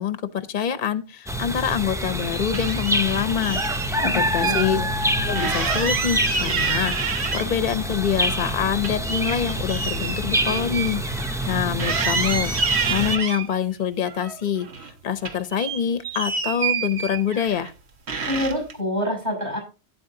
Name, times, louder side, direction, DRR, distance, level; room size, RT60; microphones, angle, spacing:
voice 1, 0.0-4.8 5.2-11.0 11.5-12.5 12.9-14.7 15.0-17.7, left 8 dB, 50° left, 12 dB, 0.7 m, -25 dB
sound 1, 1.3-13.2, equal, 5° right, 0.6 m, -26 dB
sound 2, 1.9-3.0 3.4-4.6 5.0-5.1 5.4-7.8 8.1-11.5 11.8-13.5 14.0-14.9 15.2-17.7 18.1-18.7, right 5 dB, 75° right, 1.4 m, -28 dB
voice 2, 4.0-4.9 18.2-19.6, left 1 dB, 40° right, 2 dB, 6.1 m, -27 dB
12.5 x 8.4 x 2.7 m, 0.31 s
omnidirectional pair, 1.1 m